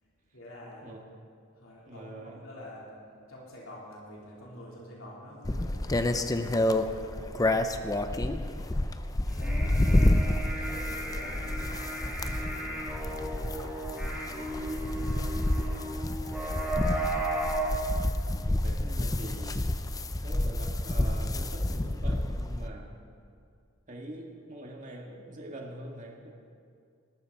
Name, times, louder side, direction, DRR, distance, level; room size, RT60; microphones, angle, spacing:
voice 1, 0.0-0.9 1.5-3.0 3.2-16.3, left 1 dB, 70° left, -5 dB, 3.8 m, -49 dB
voice 2, 1.9-2.5 18.3-19.6 20.2-22.9 23.9-26.3, right 1 dB, 40° right, -1 dB, 2.1 m, -44 dB
sound 1, 5.4-22.7, left 1 dB, 15° left, 0.6 m, -29 dB
sound 2, 9.3-17.8, right 1 dB, 5° right, 2.9 m, -35 dB
20.0 x 12.5 x 4.2 m, 2.3 s
head